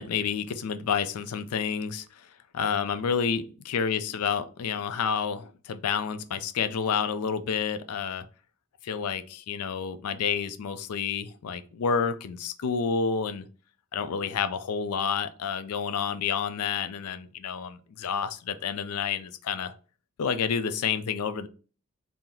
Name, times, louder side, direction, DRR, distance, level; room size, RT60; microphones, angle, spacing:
voice 1, 0.0-8.3 8.8-13.5 13.9-19.7 20.2-21.5, left 6 dB, 85° left, 0.4 m, -29 dB
3.8 x 2.0 x 4.2 m
head